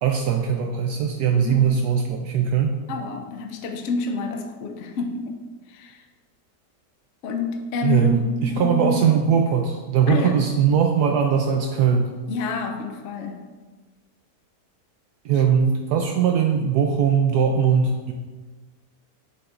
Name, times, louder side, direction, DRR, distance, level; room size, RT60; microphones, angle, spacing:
voice 1, 0.0-2.8 7.8-12.1 15.2-18.1, right 7 dB, 75° right, 3 dB, 1.1 m, -20 dB
voice 2, 1.3-1.7 2.9-5.4 5.7-6.0 7.2-9.0 10.1-10.4 12.3-13.5 15.3-15.4, left 3 dB, 60° left, 4 dB, 0.8 m, -28 dB
7.9 x 7.1 x 2.5 m, 1.3 s
omnidirectional pair, 1.8 m